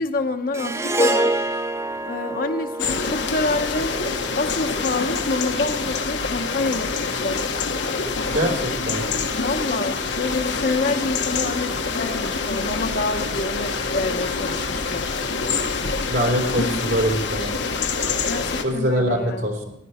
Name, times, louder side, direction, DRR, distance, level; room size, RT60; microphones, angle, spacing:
voice 1, 0.0-1.3 2.0-3.9 4.3-7.5 9.3-15.1 18.2-19.6, left 3 dB, 50° left, 6 dB, 0.9 m, -27 dB
Harp, 0.5-5.0, right 1 dB, 15° right, 0.5 m, -26 dB
sound 1, 2.8-18.6, left 4 dB, 80° left, 1.3 m, -26 dB
voice 2, 8.2-9.2 16.1-17.5 18.6-19.6, equal, 75° right, 1 dB, 3.3 m, -23 dB
15.5 x 11.0 x 4.3 m, 0.79 s
head